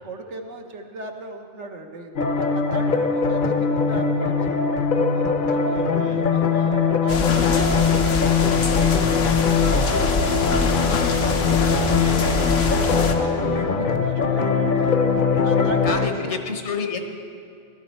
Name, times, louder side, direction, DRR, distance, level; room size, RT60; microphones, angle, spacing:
voice 1, 0.0-2.1 2.5-4.7 5.1-10.5 10.9-15.0 15.4-16.2, right 2 dB, 70° right, 3 dB, 1.3 m, -37 dB
sound 1, 2.2-16.1, left 5 dB, 50° left, 0.8 m, -21 dB
voice 2, 5.7-6.3 15.8-17.0, left 5 dB, 70° left, 5 dB, 1.3 m, -29 dB
sound 2, 7.1-13.1, left 4 dB, 90° left, 1.3 m, -24 dB
16.0 x 12.0 x 4.2 m, 2.3 s
omnidirectional pair, 1.2 m